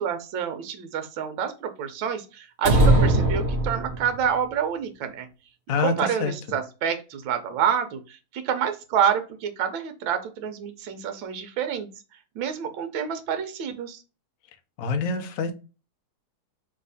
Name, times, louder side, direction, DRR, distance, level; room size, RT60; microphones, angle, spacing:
voice 1, 0.0-5.3 5.8-11.9 12.3-14.0, right 8 dB, 70° right, 7 dB, 1.5 m, -28 dB
sound 1, 2.6-4.2, right 1 dB, 30° right, 1.5 m, -20 dB
voice 2, 14.8-15.5, left 5 dB, 60° left, 5 dB, 0.9 m, -25 dB
3.5 x 3.2 x 3.9 m, 0.31 s
omnidirectional pair, 2.3 m